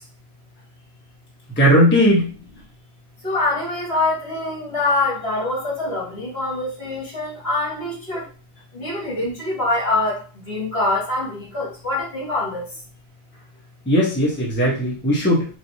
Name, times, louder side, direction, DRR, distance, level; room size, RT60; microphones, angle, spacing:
voice 1, 1.6-2.2 13.9-15.5, equal, 10° left, -6 dB, 1.2 m, -17 dB
voice 2, 3.2-8.2 8.7-10.2 10.5-12.6, left 2 dB, 50° left, -4 dB, 2.1 m, -24 dB
4.8 x 3.0 x 2.8 m, 0.36 s
omnidirectional pair, 1.3 m